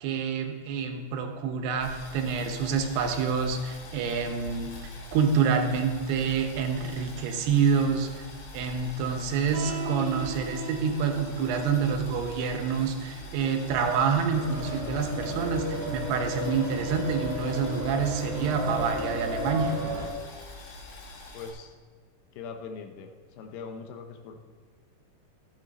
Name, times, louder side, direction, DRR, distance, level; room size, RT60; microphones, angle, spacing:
voice 1, 0.0-4.7 5.1-8.3 8.5-19.7, right 6 dB, 85° right, 5 dB, 3.0 m, -27 dB
Boiling, 1.8-21.5, left 3 dB, 60° left, 2.8 m, -44 dB
sound 1, 9.5-16.2, right 1 dB, 65° right, 1.8 m, -41 dB
sound 2, 14.3-20.1, left 1 dB, 30° right, 1.2 m, -33 dB
voice 2, 21.3-21.7 22.3-23.1 23.4-24.4, left 5 dB, 80° left, 5 dB, 3.0 m, -41 dB
14.5 x 8.7 x 4.1 m, 1.5 s
omnidirectional pair, 4.6 m